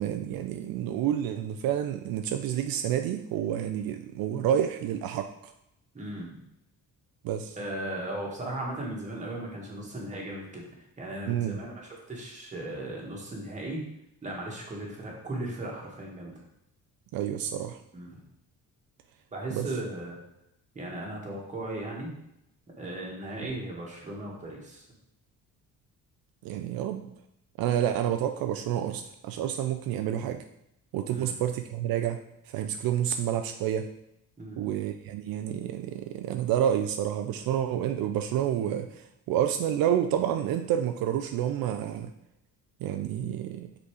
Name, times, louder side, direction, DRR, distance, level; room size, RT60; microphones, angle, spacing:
voice 1, 0.0-5.5 7.2-7.6 11.3-11.6 17.1-17.8 19.5-19.7 26.4-27.0 27.6-30.4 30.9-32.2 32.5-33.9 34.6-42.1 42.8-43.7, right 10 dB, 75° right, 7 dB, 0.5 m, -29 dB
voice 2, 5.9-6.3 7.6-10.6 11.0-13.8 14.2-16.3 17.9-18.1 19.3-20.2 20.7-22.1 22.8-24.8 31.1-31.3 34.4-34.7, right 1 dB, 20° right, -2 dB, 1.7 m, -37 dB
5.3 x 4.1 x 4.8 m, 0.81 s
cardioid pair, 135°, 35 cm